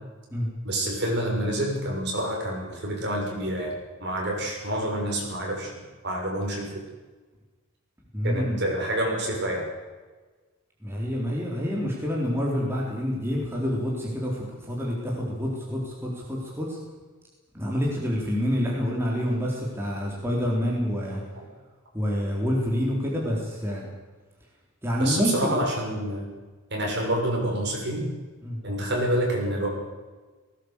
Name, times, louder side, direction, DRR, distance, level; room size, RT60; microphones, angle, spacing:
voice 1, 0.6-3.7 4.0-6.8 8.2-9.6 21.4-21.5 25.0-26.3 26.7-28.1 28.6-29.7, right 1 dB, 50° right, -1 dB, 6.7 m, -28 dB
voice 2, 8.1-8.6 10.8-16.8 17.5-21.2 21.9-23.9 24.8-25.6 28.4-28.6, equal, 10° right, -3 dB, 3.9 m, -27 dB
19.0 x 17.5 x 8.3 m, 1.3 s
head